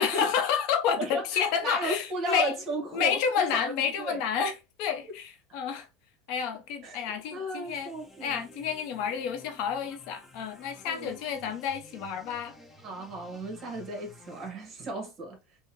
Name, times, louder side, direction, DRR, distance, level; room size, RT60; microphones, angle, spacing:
voice 1, 0.0-2.5 2.9-5.9 6.3-7.9 8.2-12.6, left 7 dB, 60° left, 0.6 m, -30 dB
voice 2, 1.0-3.7 4.0-4.2 6.8-8.4 10.8-11.2 12.8-15.4, right 1 dB, 40° right, 1.2 m, -35 dB
sound 1, 7.6-14.5, left 1 dB, 10° left, 0.9 m, -52 dB
3.5 x 2.1 x 2.8 m
supercardioid pair, 110°, 0 cm